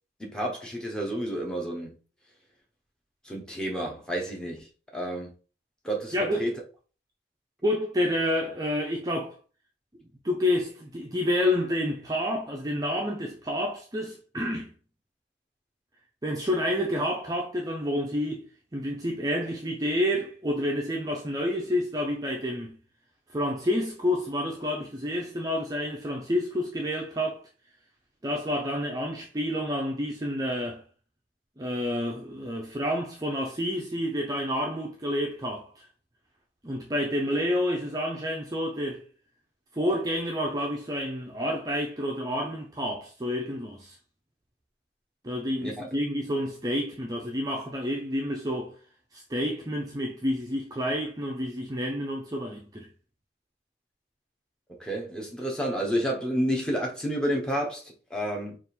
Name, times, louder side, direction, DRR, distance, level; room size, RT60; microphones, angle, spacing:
voice 1, 0.2-2.0 3.2-4.7 4.9-5.3 5.8-6.5 45.6-45.9 54.8-58.6, equal, 5° left, 0.8 m, -30 dB
voice 2, 6.1-6.5 7.6-9.4 10.0-14.7 16.2-22.8 23.3-27.5 28.2-30.8 31.6-35.9 36.6-39.1 39.7-44.0 45.2-48.8 49.1-52.9, left 1 dB, 20° right, 0.5 m, -29 dB
3.5 x 2.5 x 4.3 m
head